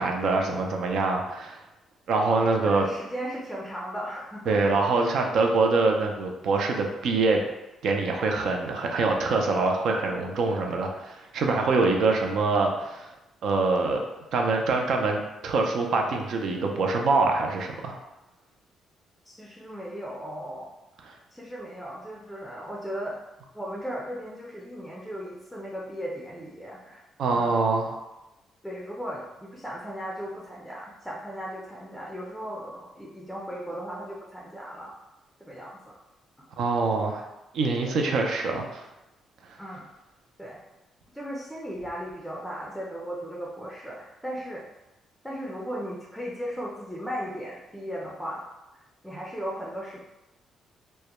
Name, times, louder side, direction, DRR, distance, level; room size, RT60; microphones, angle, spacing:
voice 1, 0.0-1.6 2.1-2.8 4.5-7.4 7.8-13.1 13.4-14.0 14.3-18.0 21.1-21.2 27.2-28.0 36.6-37.2 37.5-38.8, right 3 dB, 70° right, 2 dB, 0.4 m, -24 dB
voice 2, 2.6-4.6 19.3-20.7 21.3-23.2 23.5-27.0 27.3-27.6 28.6-34.9 35.5-36.0 37.8-38.0 39.6-39.9 40.4-40.6 41.1-44.6 45.2-48.5 48.7-50.0, equal, ahead, -4 dB, 0.4 m, -36 dB
2.2 x 2.0 x 2.9 m, 0.98 s
cardioid pair, 90°, 0 cm